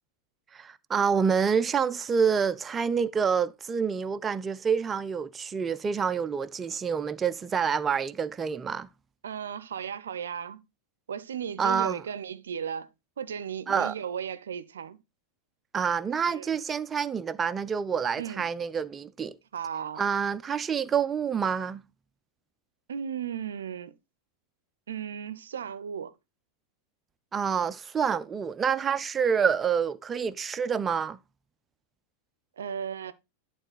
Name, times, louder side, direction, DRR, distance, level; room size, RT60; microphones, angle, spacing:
voice 1, 0.5-8.9 11.6-12.0 13.7-13.9 15.7-19.4 20.0-21.8 27.3-31.2, right 6 dB, 20° right, 0.5 m, -27 dB
voice 2, 9.2-10.6 11.1-12.9 13.2-15.0 16.3-16.6 18.2-18.4 19.5-20.0 22.9-23.9 24.9-26.1 32.6-33.1, right 8 dB, 65° right, 0.6 m, -35 dB
11.0 x 4.1 x 4.2 m
figure-of-eight pair, 90°, 0 cm